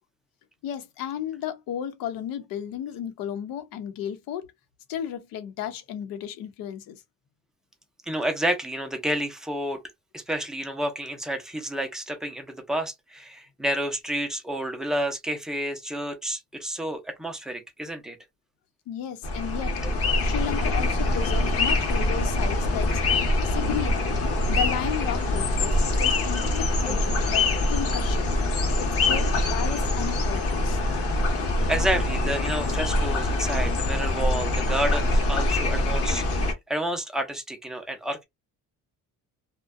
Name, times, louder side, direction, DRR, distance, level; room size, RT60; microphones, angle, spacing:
voice 1, 0.6-4.5 4.9-7.0 18.9-24.0 24.5-28.3 28.8-30.8, left 9 dB, 85° left, 0.7 m, -34 dB
voice 2, 8.1-9.8 10.1-18.2 19.8-20.0 26.9-27.0 31.2-38.2, right 1 dB, ahead, 0.5 m, -30 dB
sound 1, 19.2-36.5, left 2 dB, 45° left, 0.8 m, -24 dB
2.5 x 2.1 x 2.3 m
cardioid pair, 140°, 33 cm